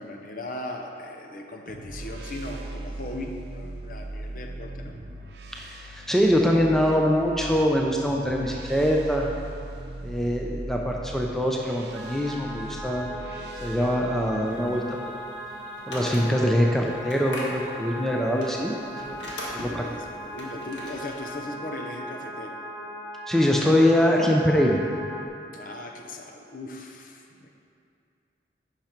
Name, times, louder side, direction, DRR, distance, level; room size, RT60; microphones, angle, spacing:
voice 1, 0.0-5.0 19.6-22.5 25.5-27.5, left 1 dB, 50° left, 2 dB, 0.8 m, -38 dB
sound 1, 1.7-14.5, right 1 dB, 65° right, 0.7 m, -39 dB
voice 2, 5.6-9.3 10.0-13.1 13.6-14.8 15.9-18.7 19.1-19.2 19.5-19.8 23.3-24.8, equal, ahead, -1 dB, 0.5 m, -23 dB
sound 2, 11.9-25.3, equal, 20° right, 2.0 m, -39 dB
sound 3, 14.5-21.4, left 1 dB, 85° left, 1.6 m, -40 dB
10.5 x 5.8 x 4.5 m, 2.5 s
head